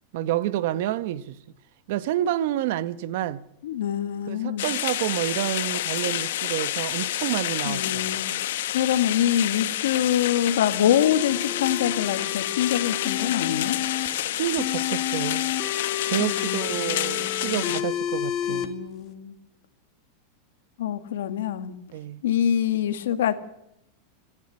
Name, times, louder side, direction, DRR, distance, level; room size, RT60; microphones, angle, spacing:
voice 1, 0.1-1.4 1.9-3.4 4.3-8.2 14.3-15.5 16.0-18.7 21.9-22.2, right 13 dB, 55° right, 0.9 m, -29 dB
voice 2, 3.6-4.6 7.7-8.3 8.7-13.8 16.2-17.8 18.5-19.3 20.8-21.8 22.2-23.3, left 10 dB, 90° left, 1.8 m, -25 dB
sound 1, 4.6-17.8, left 13 dB, 70° left, 1.0 m, -29 dB
sound 2, 10.1-14.1 14.6-18.6, left 10 dB, 30° left, 2.0 m, -31 dB
26.5 x 11.0 x 9.7 m
supercardioid pair, 165°, 0 cm